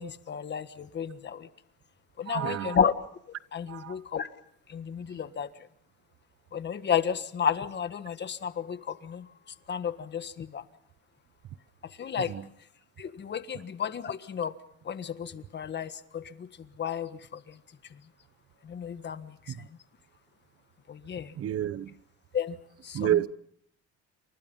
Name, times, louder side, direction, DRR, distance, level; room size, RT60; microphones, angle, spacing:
voice 1, 0.0-1.5 2.2-2.9 3.5-4.3 4.7-5.7 6.5-9.3 9.7-10.6 12.0-12.3 13.0-14.5 14.8-16.5 16.8-17.6 17.9-18.0 18.6-19.7 20.9-21.3 22.3-22.6 22.8-23.3, left 7 dB, 40° left, 1.5 m, -32 dB
voice 2, 2.3-2.8 3.7-4.0 12.3-12.4 19.5-19.6 21.4-21.9 22.9-23.3, right 11 dB, 50° right, 1.1 m, -29 dB
28.5 x 25.5 x 5.5 m
cardioid pair, 130°, 29 cm